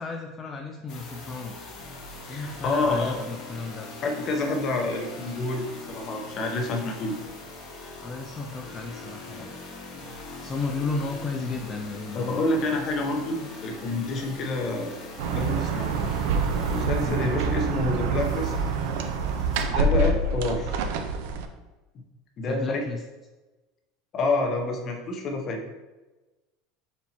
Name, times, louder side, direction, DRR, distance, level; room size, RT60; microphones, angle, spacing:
voice 1, 0.0-1.8 2.3-3.9 8.0-9.5 10.4-12.4 13.3-13.5 17.0-17.3 22.5-23.0, left 3 dB, 20° left, 2 dB, 0.3 m, -33 dB
sound 1, 0.9-19.6, left 2 dB, 55° left, 1.0 m, -42 dB
voice 2, 2.3-3.2 4.0-7.2 12.1-15.0 15.3-15.9 16.7-18.5 19.6-20.8 22.4-22.8 24.1-25.6, left 2 dB, 40° left, 2 dB, 0.8 m, -28 dB
sound 2, 15.2-21.5, right 4 dB, 75° right, 0.4 m, -26 dB
4.3 x 2.9 x 4.1 m, 1.2 s
supercardioid pair, 135°, 0 cm